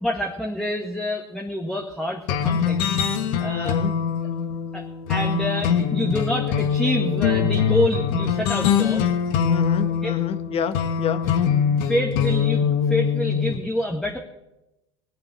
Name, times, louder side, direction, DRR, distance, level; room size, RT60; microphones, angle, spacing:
voice 1, 0.0-2.9 3.4-3.8 4.7-9.0 10.0-10.1 11.8-14.2, left 1 dB, 5° left, 0 dB, 1.6 m, -27 dB
sound 1, 2.3-13.6, left 7 dB, 60° left, 1.5 m, -23 dB
voice 2, 3.5-3.9 9.4-11.3, left 8 dB, 40° left, 11 dB, 1.3 m, -28 dB
19.5 x 7.6 x 7.3 m, 0.94 s
hypercardioid pair, 85°, 15 cm